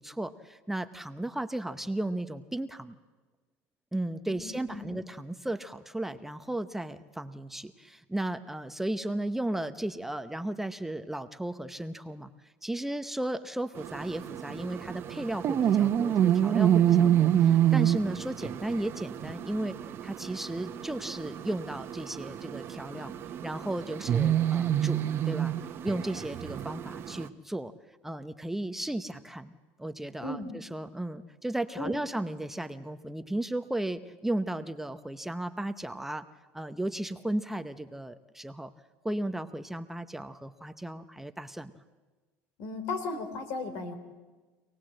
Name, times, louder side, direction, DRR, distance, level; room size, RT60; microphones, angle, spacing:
voice 1, 0.0-2.9 3.9-12.3 12.6-19.8 20.0-23.1 23.4-25.5 25.8-27.7 28.0-29.5 29.8-36.3 36.5-38.7 39.0-41.7, right 1 dB, 5° right, 9 dB, 0.8 m, -35 dB
voice 2, 4.3-5.0 16.9-17.1 30.2-30.5 31.8-31.9 42.6-44.0, left 3 dB, 65° left, 9 dB, 3.5 m, -36 dB
sound 1, 13.8-27.3, right 10 dB, 45° right, 1.1 m, -28 dB
26.0 x 18.5 x 7.7 m, 1.3 s
supercardioid pair, 115°, 6 cm